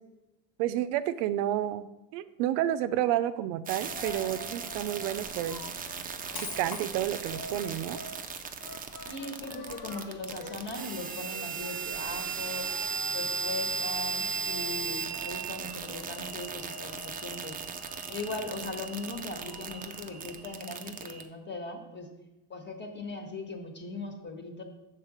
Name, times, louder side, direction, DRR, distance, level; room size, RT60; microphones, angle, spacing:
voice 1, 0.6-5.6 6.6-8.0, right 12 dB, 75° right, 12 dB, 0.6 m, -30 dB
sound 1, 3.7-21.2, right 5 dB, 20° right, 0.4 m, -36 dB
Coin (dropping), 3.8-20.5, left 3 dB, 80° left, 1.5 m, -47 dB
voice 2, 9.0-12.7 13.1-17.6 18.1-22.1 22.5-24.6, left 3 dB, 20° left, 3 dB, 1.3 m, -39 dB
6.5 x 4.0 x 6.2 m, 0.97 s
supercardioid pair, 110°, 49 cm